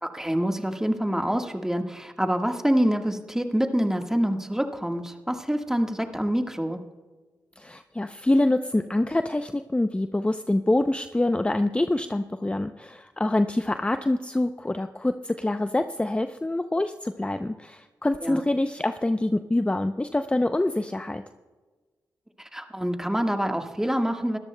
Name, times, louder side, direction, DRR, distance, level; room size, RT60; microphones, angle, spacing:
voice 1, 0.0-6.8 18.2-18.4 22.4-24.4, equal, 5° right, 4 dB, 1.5 m, -26 dB
voice 2, 7.6-21.2, left 1 dB, 15° left, 8 dB, 0.6 m, -25 dB
22.5 x 13.5 x 2.2 m, 1.3 s
supercardioid pair, 45°, 7 cm